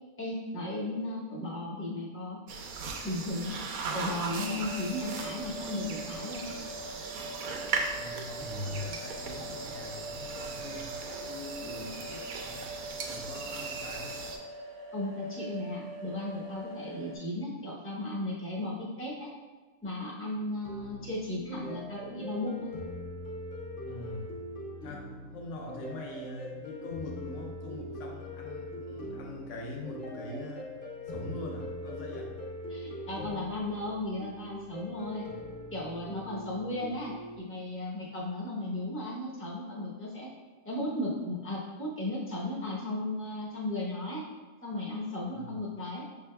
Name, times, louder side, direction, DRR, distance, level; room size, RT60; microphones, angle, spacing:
voice 1, 0.2-2.4 3.0-3.6 3.9-6.4 11.6-12.1 14.9-19.3 19.8-22.7 32.7-35.2 35.7-40.3 40.6-44.2 44.6-46.0, left 1 dB, 10° left, -5 dB, 0.7 m, -35 dB
sound 1, 2.5-14.4, right 4 dB, 85° right, 1.0 m, -38 dB
sound 2, 4.4-17.2, right 1 dB, 50° right, 0.7 m, -43 dB
voice 2, 7.8-14.2 23.8-24.4 24.8-30.7 31.1-32.4 45.3-45.6, left 2 dB, 65° left, -1 dB, 1.1 m, -43 dB
sound 3, 20.6-37.4, left 1 dB, 45° left, 0.9 m, -42 dB
5.8 x 3.4 x 2.2 m, 1.3 s
omnidirectional pair, 1.4 m